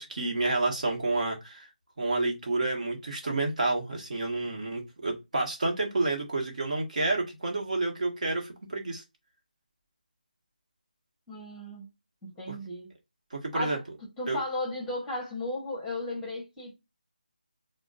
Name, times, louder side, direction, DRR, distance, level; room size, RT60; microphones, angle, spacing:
voice 1, 0.0-1.7 2.0-9.0 12.5-12.6 13.3-13.8 14.3-14.4, right 2 dB, 50° right, 1.2 m, -29 dB
voice 2, 11.3-11.9 12.2-12.9 13.5-13.8 14.2-16.7, left 1 dB, 5° left, 1.0 m, -35 dB
4.9 x 2.1 x 2.5 m
figure-of-eight pair, 160°, 5 cm